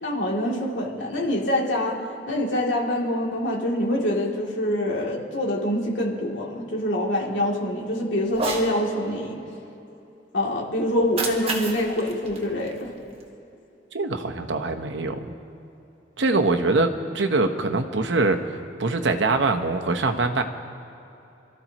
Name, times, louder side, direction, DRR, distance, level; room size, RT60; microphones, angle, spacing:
voice 1, 0.0-9.4 10.3-12.9, left 1 dB, 85° left, -2 dB, 2.8 m, -25 dB
Cat, 8.3-8.7 10.9-13.3, right 3 dB, 35° right, 1.6 m, -32 dB
voice 2, 13.9-15.3 16.2-18.4 18.8-20.4, right 3 dB, 90° right, 5 dB, 1.0 m, -23 dB
28.0 x 13.5 x 3.0 m, 2.9 s
head